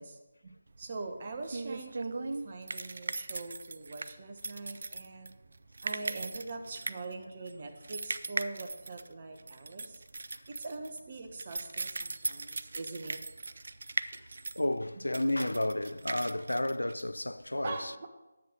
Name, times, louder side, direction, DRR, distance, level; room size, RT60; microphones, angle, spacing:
voice 1, 0.0-5.3 5.8-10.0 10.5-13.2 17.6-18.1, right 3 dB, 35° right, 1.2 m, -42 dB
sound 1, 0.7-17.5, right 3 dB, 55° right, 0.4 m, -39 dB
voice 2, 14.6-18.1, left 1 dB, 80° left, 0.4 m, -32 dB
10.0 x 7.8 x 5.3 m
figure-of-eight pair, 155°, 0 cm